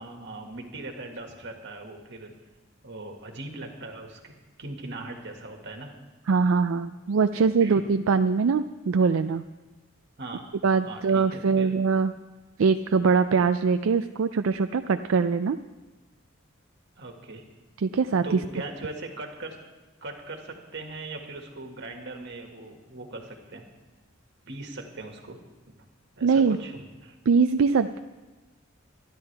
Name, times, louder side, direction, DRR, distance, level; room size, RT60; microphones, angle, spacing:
voice 1, 0.0-2.3 2.8-4.3 4.6-5.9 7.3-7.8 10.2-10.5 10.8-11.7 17.0-17.4 18.2-19.6 20.0-23.7 24.4-25.4 25.7-25.9 26.2-27.2, right 2 dB, 60° right, 3 dB, 1.9 m, -39 dB
voice 2, 6.3-9.4 10.6-12.1 12.6-15.6 17.8-18.4 26.2-26.6 27.3-28.0, right 5 dB, 75° right, 9 dB, 0.4 m, -22 dB
25.0 x 10.5 x 3.4 m, 1.2 s
head